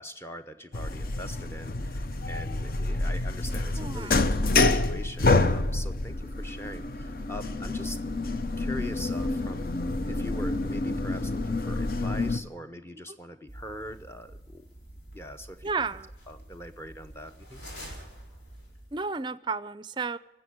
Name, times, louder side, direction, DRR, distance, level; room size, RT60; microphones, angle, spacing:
voice 1, 0.0-8.0 8.6-9.7 10.1-14.7 15.1-15.7 16.3-17.6, left 1 dB, 15° left, 7 dB, 0.7 m, -42 dB
sound 1, 0.7-12.4, left 2 dB, 50° left, 0.7 m, -28 dB
voice 2, 3.8-4.5 15.6-16.1 18.9-20.2, right 4 dB, 25° right, 16 dB, 0.4 m, -33 dB
sound 2, 13.5-19.1, equal, 80° left, 4.4 m, -47 dB
18.5 x 7.8 x 9.4 m, 1.1 s
head